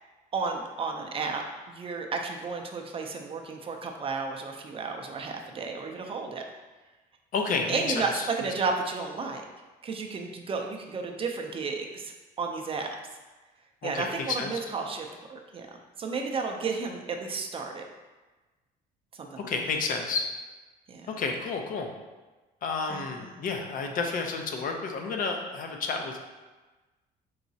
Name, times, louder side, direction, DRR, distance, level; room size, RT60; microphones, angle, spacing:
voice 1, 0.3-1.4 1.7-6.4 7.7-9.4 9.8-12.9 13.8-15.6 16.0-17.8 19.2-19.5 20.9-21.0 22.9-23.3, right 4 dB, 35° right, 2 dB, 0.4 m, -32 dB
voice 2, 7.3-8.3 13.8-14.6 19.4-20.3 21.1-21.9 22.6-26.2, left 4 dB, 55° left, 3 dB, 0.5 m, -31 dB
4.7 x 2.9 x 2.7 m, 1.2 s
cardioid pair, 110°, 17 cm